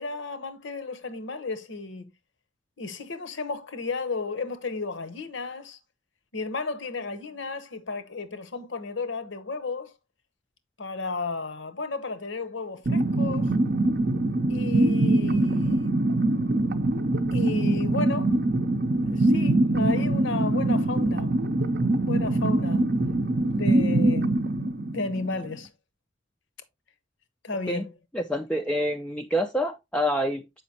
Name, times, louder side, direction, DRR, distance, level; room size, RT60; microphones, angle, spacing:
voice 1, 0.0-2.1 2.8-5.8 6.3-9.9 10.8-13.5 14.5-15.9 17.3-18.4 19.1-21.3 22.0-22.9 23.5-24.4 24.9-25.7 27.4-27.9, left 3 dB, 65° left, 0.9 m, -33 dB
sound 1, 12.9-25.5, right 2 dB, 50° right, 0.6 m, -23 dB
voice 2, 28.1-30.6, equal, 5° left, 0.3 m, -27 dB
7.3 x 5.1 x 2.8 m
head